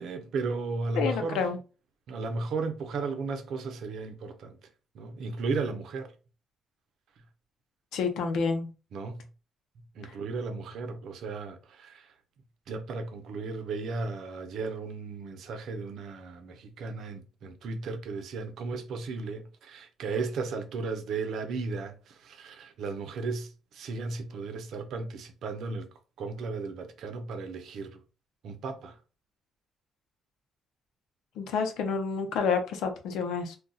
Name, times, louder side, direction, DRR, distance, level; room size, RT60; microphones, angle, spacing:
voice 1, 0.0-1.4 2.1-4.6 4.9-6.1 8.9-9.2 10.0-12.1 12.7-25.9 26.2-28.0 28.4-29.0, right 4 dB, 75° right, 0.6 m, -35 dB
voice 2, 1.0-1.6 7.9-8.7 10.0-10.1 31.4-33.6, left 5 dB, 85° left, 0.6 m, -29 dB
2.4 x 2.3 x 3.9 m
cardioid pair, 90°, 0 cm